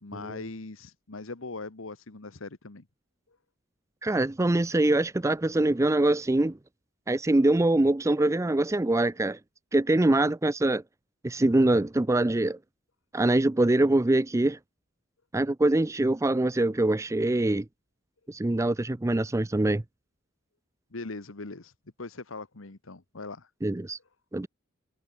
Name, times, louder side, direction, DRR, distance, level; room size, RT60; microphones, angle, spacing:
voice 1, 0.0-2.9 3.3-3.4 20.9-21.7 22.0-23.5, left 3 dB, 85° left, 1.4 m, -40 dB
voice 2, 4.0-6.6 7.1-9.4 9.7-10.8 11.2-12.6 13.1-14.6 15.3-17.6 18.3-19.8 23.6-24.0 24.3-24.5, right 2 dB, 15° right, 0.5 m, -24 dB
head